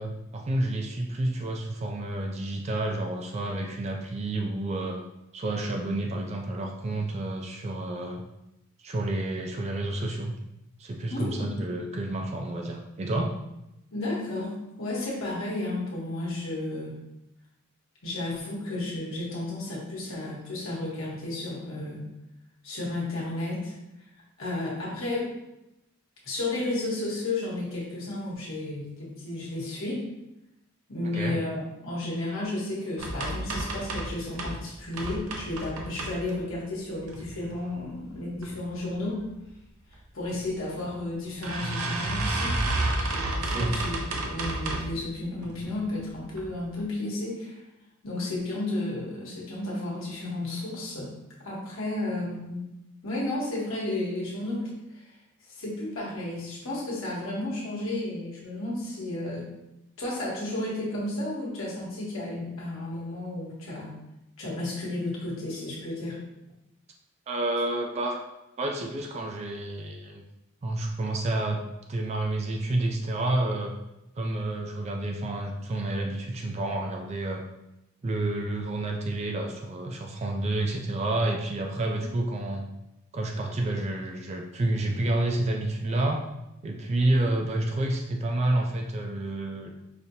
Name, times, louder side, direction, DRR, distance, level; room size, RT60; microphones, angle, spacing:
voice 1, 0.0-5.0 5.3-8.2 8.8-10.3 10.8-13.4 31.1-31.4 43.5-43.7 67.3-68.2 68.6-70.2 70.6-71.6 71.9-73.7 74.2-77.4 78.0-82.7 83.1-86.2 86.6-89.7, right 2 dB, 30° right, 2 dB, 0.3 m, -29 dB
voice 2, 11.1-11.5 13.9-16.9 18.0-22.1 22.6-23.7 24.4-25.3 26.2-30.0 30.9-39.2 40.1-42.5 42.9-47.6 48.0-51.1 51.4-52.6 53.0-55.1 55.5-59.5 60.0-63.9 64.4-66.2, left 2 dB, 65° left, -5 dB, 1.2 m, -33 dB
sound 1, 33.0-34.6 34.9-36.5 37.0-37.6 38.1-38.5 38.8-38.9 39.2-39.3 40.3-40.4 40.8-40.9 41.4-45.0 45.4-45.9 46.3-46.5 46.8-46.9, right 2 dB, 90° right, 0.6 m, -31 dB
4.9 x 2.8 x 2.7 m, 0.92 s
head